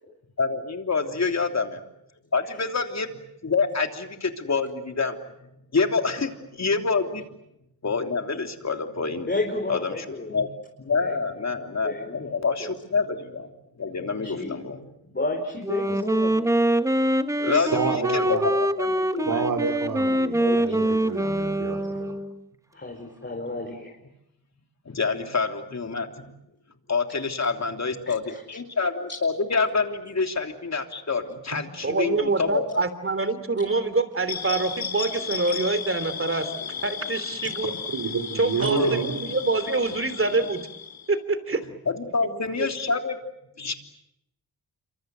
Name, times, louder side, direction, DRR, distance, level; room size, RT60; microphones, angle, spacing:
voice 1, 0.4-1.8 2.3-3.1 3.4-5.2 5.7-7.3 7.8-9.3 9.7-10.5 10.8-13.5 13.8-14.8 17.4-19.4 24.9-26.3 26.9-32.6 38.8-38.9 41.9-43.2 43.6-43.7, left 4 dB, 45° left, 5 dB, 3.3 m, -27 dB
voice 2, 9.2-10.4 11.0-11.1 11.8-12.0 12.6-12.7 14.2-14.6 15.1-16.5 17.4-17.8 20.4-21.1 22.7-23.9 28.1-28.4, left 2 dB, 30° left, 1 dB, 5.0 m, -32 dB
Wind instrument woodwind instrument, 15.6-22.4, right 1 dB, 10° right, 1.1 m, -24 dB
voice 3, 17.5-18.5 19.2-22.1 31.5-31.6 37.9-39.3, right 5 dB, 60° right, 3 dB, 3.2 m, -29 dB
voice 4, 31.8-36.5 36.8-37.7 38.3-40.7 41.1-41.6 42.2-42.7, right 3 dB, 35° right, 12 dB, 3.2 m, -26 dB
sound 1, 34.3-41.1, left 7 dB, 65° left, 3.2 m, -34 dB
27.5 x 25.0 x 7.8 m, 0.83 s
cardioid pair, 70°, 37 cm